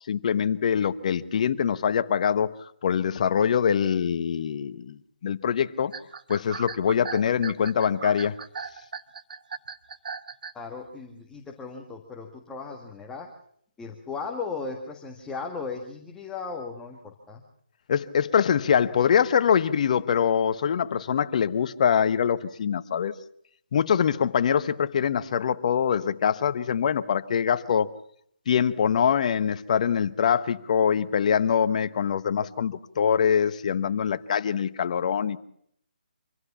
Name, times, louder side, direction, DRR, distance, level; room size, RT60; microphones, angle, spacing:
voice 1, 0.1-2.5 2.8-5.9 6.3-8.4 17.9-23.1 23.7-27.9 28.5-35.4, left 7 dB, 45° left, 1.1 m, -24 dB
sound 1, 5.9-10.7, right 5 dB, 55° right, 1.1 m, -37 dB
voice 2, 10.5-13.3 13.8-17.4, left 4 dB, 10° left, 1.7 m, -36 dB
26.0 x 16.0 x 7.2 m
figure-of-eight pair, 155°, 5 cm